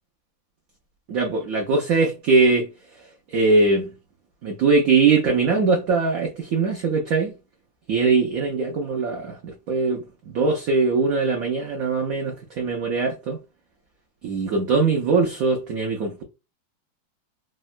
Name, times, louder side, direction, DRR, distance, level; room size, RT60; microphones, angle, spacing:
voice 1, 1.1-2.7 3.3-3.9 4.4-7.3 7.9-10.0 10.3-13.4 14.2-16.2, right 4 dB, 85° right, 0.7 m, -21 dB
3.5 x 2.1 x 2.3 m
omnidirectional pair, 2.1 m